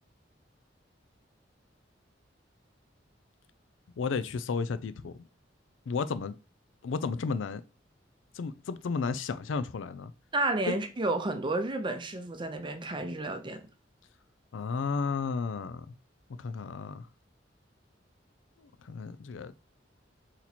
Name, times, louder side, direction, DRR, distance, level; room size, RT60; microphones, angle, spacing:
voice 1, 4.0-5.3 5.9-6.3 6.8-7.6 8.3-10.1 10.7-10.8 14.5-15.9 16.3-17.1 18.6-19.6, left 5 dB, 90° left, 0.4 m, -33 dB
voice 2, 10.3-13.6, right 2 dB, 25° right, 0.6 m, -31 dB
4.2 x 3.0 x 4.1 m
head